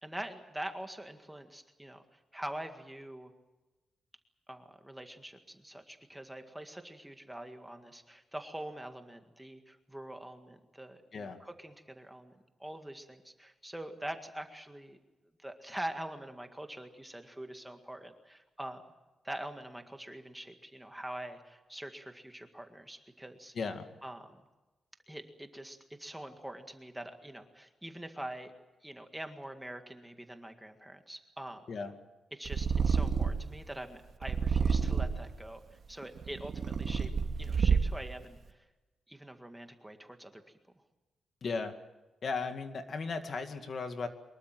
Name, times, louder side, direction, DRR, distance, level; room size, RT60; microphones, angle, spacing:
voice 1, 0.0-3.3 4.5-12.3 12.6-15.0 15.4-18.8 19.2-23.5 24.0-24.4 25.1-28.5 28.8-31.6 32.3-37.1 37.4-38.7 39.1-40.4, right 1 dB, 5° right, 6 dB, 1.9 m, -44 dB
voice 2, 23.6-23.9 31.7-31.9 41.4-41.7 42.2-44.1, left 4 dB, 45° left, 7 dB, 2.1 m, -36 dB
Purr, 32.5-33.5 34.2-35.3 36.0-38.1, right 5 dB, 55° right, 2.1 m, -29 dB
24.0 x 21.5 x 7.7 m, 1.1 s
wide cardioid pair, 140°, 0 cm